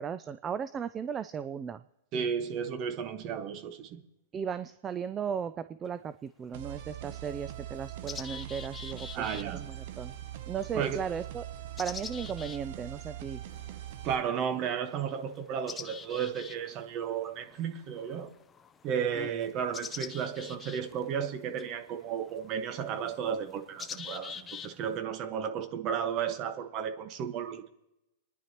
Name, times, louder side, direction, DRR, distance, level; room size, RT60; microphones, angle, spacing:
voice 1, 0.0-1.8 4.3-10.1 10.5-11.4 11.8-13.4 19.2-19.3, right 7 dB, 25° right, 13 dB, 0.4 m, -36 dB
voice 2, 2.1-4.0 9.1-9.6 10.7-11.0 14.0-18.3 18.8-27.7, right 8 dB, 40° right, 8 dB, 1.3 m, -33 dB
sound 1, 5.9-6.0 6.8-6.9 7.3-25.0, left 6 dB, 20° left, 0.6 m, -47 dB
sound 2, 6.5-14.1, right 12 dB, 55° right, 0.8 m, -42 dB
28.0 x 10.0 x 3.0 m, 0.92 s
hypercardioid pair, 120°, 0 cm